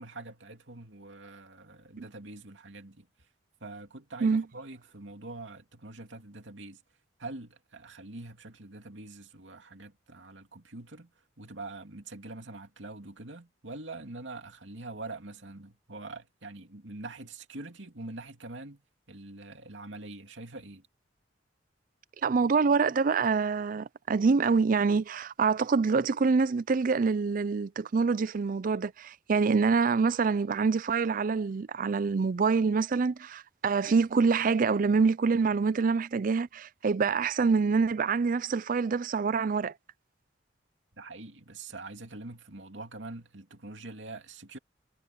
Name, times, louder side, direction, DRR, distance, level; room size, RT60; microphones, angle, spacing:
voice 1, 0.0-3.3 3.6-6.8 7.2-11.1 11.4-18.8 19.1-20.9 40.9-44.6, right 2 dB, 85° right, 2.6 m, -44 dB
voice 2, 22.2-39.7, right 5 dB, 45° right, 0.4 m, -26 dB
head